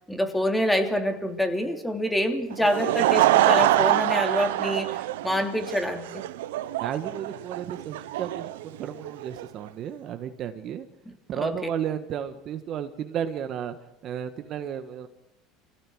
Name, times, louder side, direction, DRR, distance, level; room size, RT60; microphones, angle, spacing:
voice 1, 0.1-4.9 5.2-6.2 11.0-11.5, equal, 5° left, 5 dB, 3.2 m, -26 dB
Laughter / Crowd, 2.5-9.4, right 15 dB, 85° right, 0.8 m, -25 dB
voice 2, 6.8-10.9 11.3-13.8 14.0-15.1, right 9 dB, 50° right, 9 dB, 1.5 m, -33 dB
25.5 x 16.5 x 6.4 m, 0.88 s
supercardioid pair, 95°, 0 cm